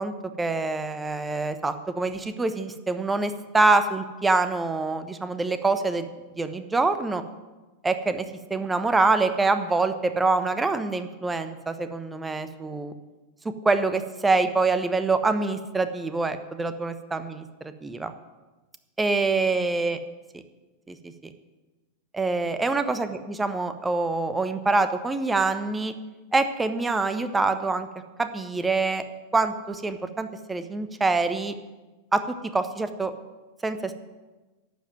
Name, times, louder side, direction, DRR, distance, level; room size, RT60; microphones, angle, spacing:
voice 1, 0.0-6.1 6.4-7.2 7.8-8.2 8.5-12.9 13.6-18.1 19.0-20.0 20.9-21.1 22.1-25.9 26.3-27.9 28.2-29.0 29.3-31.5 32.1-33.1 33.6-33.9, right 3 dB, 10° right, 10 dB, 1.0 m, -25 dB
11.5 x 7.6 x 9.2 m, 1.2 s
figure-of-eight pair, 90°, 0 cm